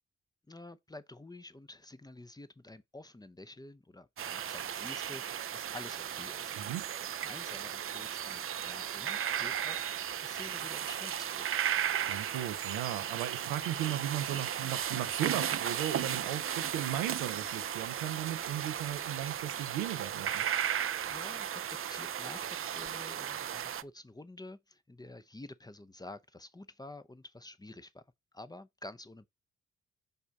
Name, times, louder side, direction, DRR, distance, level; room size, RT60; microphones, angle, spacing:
voice 1, 0.5-6.6 6.9-11.5 21.1-28.0 28.3-29.3, left 2 dB, 10° left, 0.7 m, -49 dB
sound 1, 4.2-23.8, right 9 dB, 45° right, 0.5 m, -35 dB
voice 2, 6.6-6.9 12.0-20.5, right 12 dB, 90° right, 0.8 m, -36 dB
5.5 x 3.4 x 5.3 m
hypercardioid pair, 45°, 31 cm